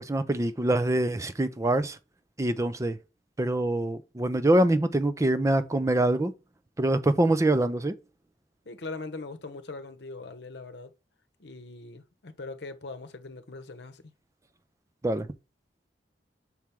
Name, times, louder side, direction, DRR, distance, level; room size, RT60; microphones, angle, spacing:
voice 1, 0.0-2.0 2.4-3.0 3.4-6.3 6.8-7.9 15.0-15.3, right 1 dB, 20° right, 0.5 m, -24 dB
voice 2, 8.6-10.9 11.4-14.1, left 3 dB, 70° left, 0.8 m, -41 dB
6.0 x 4.4 x 3.5 m
head